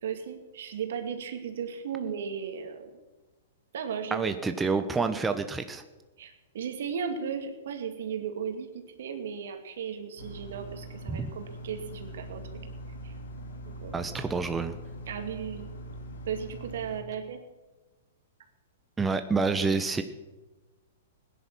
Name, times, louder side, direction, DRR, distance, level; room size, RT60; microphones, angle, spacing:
voice 1, 0.0-2.9 3.7-4.3 6.2-12.5 13.0-13.1 13.6-14.0 15.1-15.7 16.3-17.4, right 7 dB, 70° right, 6 dB, 2.2 m, -36 dB
voice 2, 4.1-5.8 11.1-11.3 13.9-14.8 19.0-20.0, right 4 dB, 10° right, 8 dB, 0.8 m, -28 dB
sound 1, 10.2-17.0, right 1 dB, 80° left, 2.9 m, -42 dB
17.0 x 10.5 x 6.1 m, 1.1 s
hypercardioid pair, 135°, 0 cm